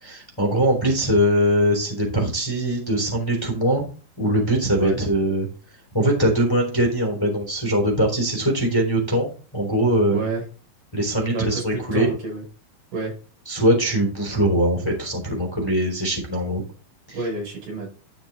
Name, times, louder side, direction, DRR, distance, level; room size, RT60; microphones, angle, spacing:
voice 1, 0.0-3.8 4.2-5.5 5.9-9.3 9.5-10.2 10.9-12.1 13.5-16.6 17.1-17.2, right 1 dB, 10° left, 1 dB, 2.6 m, -21 dB
voice 2, 10.1-10.4 11.3-12.4 12.9-13.2 17.1-17.9, right 3 dB, 80° right, -1 dB, 7.5 m, -29 dB
11.5 x 5.9 x 3.8 m, 0.35 s
omnidirectional pair, 4.4 m